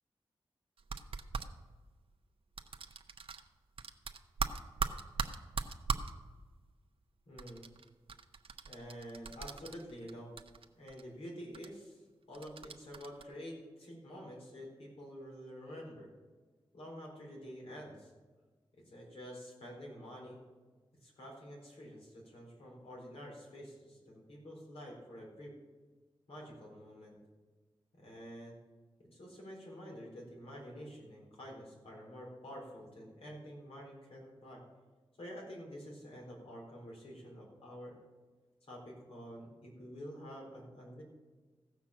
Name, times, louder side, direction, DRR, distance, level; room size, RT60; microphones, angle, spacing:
sound 1, 0.8-1.5 2.6-3.5 3.8-6.1 7.4-10.1 10.4-11.0 11.5-11.7 12.3-13.2, right 5 dB, 70° right, 0.8 m, -39 dB
voice 1, 7.3-7.6 8.6-10.3 10.7-12.0 12.3-16.1 16.7-18.1 18.7-20.4 21.0-25.5 26.3-27.2 27.9-28.6 29.0-34.6 35.2-37.9 38.7-41.0, equal, 80° left, -2 dB, 4.3 m, -48 dB
15.5 x 6.1 x 7.2 m, 1.3 s
wide cardioid pair, 75°, 10 cm